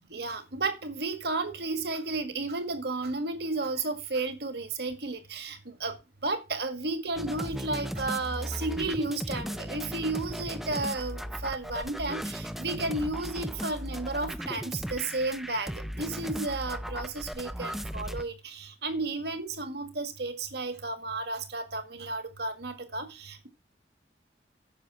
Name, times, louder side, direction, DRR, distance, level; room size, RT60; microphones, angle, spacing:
voice 1, 0.1-5.9 6.2-15.7 16.0-23.5, right 3 dB, 55° right, 1.9 m, -33 dB
sound 1, 7.2-18.2, equal, ahead, 0.5 m, -37 dB
9.9 x 6.6 x 6.1 m
head